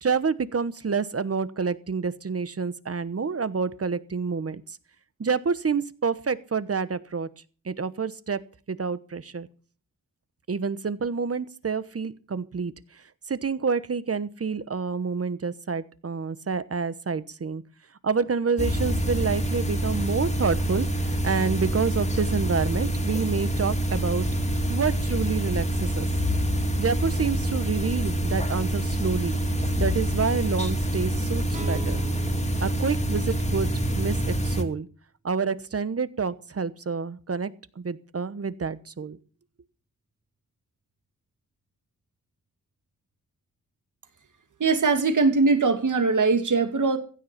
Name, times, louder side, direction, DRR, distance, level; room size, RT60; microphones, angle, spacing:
voice 1, 0.0-4.8 5.2-7.3 7.6-9.5 10.5-12.7 13.3-17.6 18.0-24.3 24.7-26.1 26.8-29.4 29.8-32.0 32.6-34.9 35.2-39.2, right 5 dB, 45° right, 15 dB, 1.1 m, -28 dB
sound 1, 18.6-34.6, right 1 dB, 20° left, 2.4 m, -26 dB
sound 2, 31.5-34.5, right 2 dB, 25° right, 2.7 m, -40 dB
voice 2, 44.6-47.0, right 4 dB, 65° right, 8 dB, 2.4 m, -21 dB
15.5 x 9.8 x 5.8 m, 0.39 s
wide cardioid pair, 90°, 33 cm